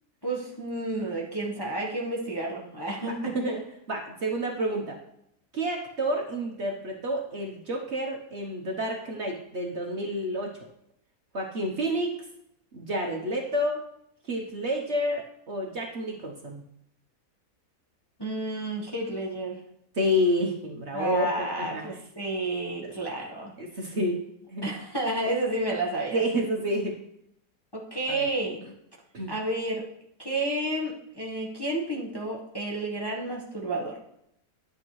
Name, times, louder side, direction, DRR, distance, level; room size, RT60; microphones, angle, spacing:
voice 1, 0.2-3.4 18.2-19.6 20.9-23.5 24.6-26.2 27.7-28.7 29.3-29.8 30.2-34.0, right 1 dB, 15° left, -3 dB, 1.0 m, -31 dB
voice 2, 3.1-3.6 3.9-5.0 5.5-10.6 11.3-12.2 12.7-13.9 14.3-16.6 19.9-21.3 21.6-21.9 23.6-24.2 24.5-24.6 26.1-27.0 28.1-28.2 29.1-29.3, equal, 50° right, 0 dB, 1.1 m, -29 dB
11.0 x 7.2 x 3.1 m, 0.76 s
omnidirectional pair, 1.8 m